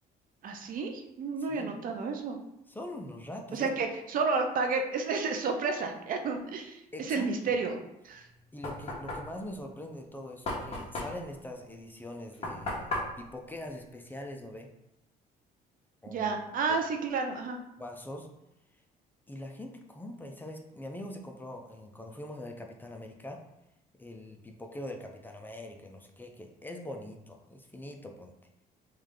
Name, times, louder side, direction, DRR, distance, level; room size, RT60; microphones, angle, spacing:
voice 1, 0.4-2.4 3.5-8.3 16.1-17.6, right 4 dB, 55° right, 5 dB, 0.6 m, -31 dB
voice 2, 1.4-1.8 2.7-3.7 6.9-7.5 8.5-14.7 16.0-16.3 16.7-16.8 17.8-18.3 19.3-23.4 24.0-28.3, left 1 dB, 10° left, 2 dB, 0.5 m, -43 dB
Knock, 8.1-14.6, left 2 dB, 35° left, 1.2 m, -38 dB
3.3 x 3.2 x 3.7 m, 0.87 s
cardioid pair, 110°, 17 cm